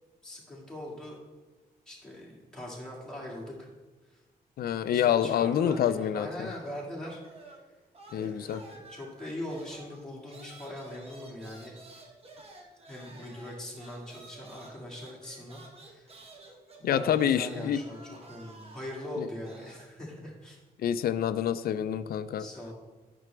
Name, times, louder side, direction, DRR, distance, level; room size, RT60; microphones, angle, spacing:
voice 1, 0.2-1.2 1.9-3.7 4.1-4.2 4.9-7.2 8.1-11.8 12.9-16.2 16.8-18.0 18.3-20.6 22.4-22.7, left 1 dB, 5° left, -4 dB, 2.0 m, -41 dB
voice 2, 4.6-6.5 8.1-8.6 16.8-17.8 19.2-19.3 20.8-22.5, left 9 dB, 75° left, 13 dB, 0.4 m, -27 dB
sound 1, 5.6-7.7 7.9-19.9, right 2 dB, 40° right, 1.1 m, -51 dB
9.1 x 6.0 x 3.4 m, 1.2 s
wide cardioid pair, 135°, 16 cm